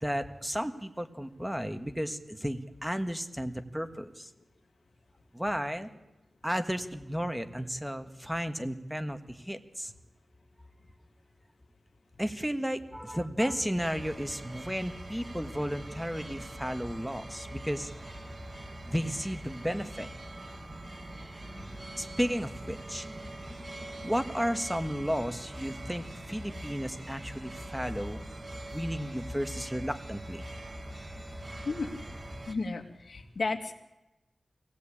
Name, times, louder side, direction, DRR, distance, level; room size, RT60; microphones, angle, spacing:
voice 1, 0.0-4.3 5.3-5.9 6.4-9.9 12.2-17.9 18.8-20.1 22.0-23.1 24.0-28.2 28.7-30.5, equal, 5° right, 8 dB, 1.6 m, -33 dB
sound 1, 13.8-32.5, right 1 dB, 30° right, 2.1 m, -43 dB
voice 2, 32.5-33.7, left 3 dB, 70° left, 6 dB, 2.3 m, -33 dB
24.0 x 17.0 x 8.7 m, 1.0 s
wide cardioid pair, 75°, 0 cm